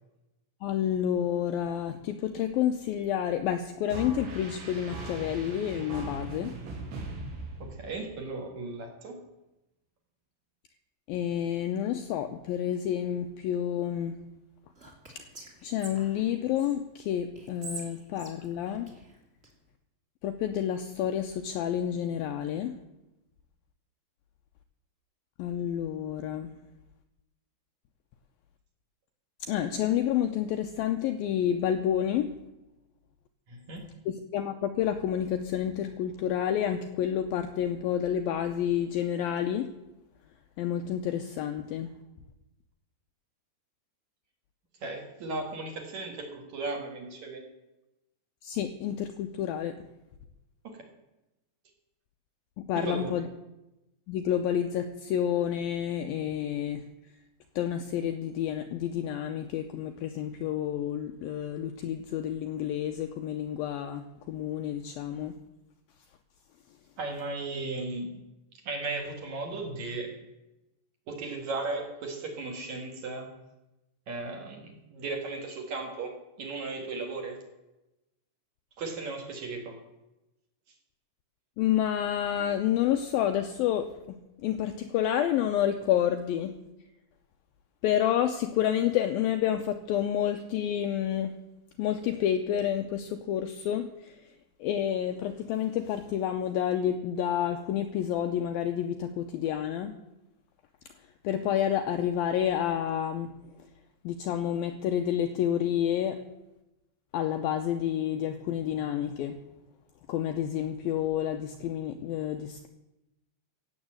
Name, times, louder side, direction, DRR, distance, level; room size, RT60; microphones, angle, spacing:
voice 1, 0.6-6.6 11.1-14.2 15.2-15.3 15.6-18.9 20.2-22.8 25.4-26.5 29.4-32.3 34.1-39.7 40.6-41.9 48.4-49.7 52.6-53.3 54.1-56.8 57.6-65.4 81.6-86.6 87.8-91.4 91.8-99.9 101.2-103.3 103.6-103.7 104.0-106.2 107.1-109.4 110.1-112.7, left 10 dB, 85° left, 6 dB, 2.1 m, -29 dB
sound 1, 3.9-8.2, right 2 dB, 80° right, 4.7 m, -39 dB
voice 2, 7.6-9.2 33.5-33.9 44.8-47.4 50.6-50.8 52.8-53.1 67.0-68.2 68.6-70.2 71.1-73.3 74.1-77.4 78.8-79.8, right 3 dB, 50° right, 2 dB, 2.8 m, -36 dB
Whispering, 14.7-16.7 17.3-19.5, right 3 dB, 20° right, 2.1 m, -45 dB
16.5 x 8.2 x 7.7 m, 0.96 s
omnidirectional pair, 5.0 m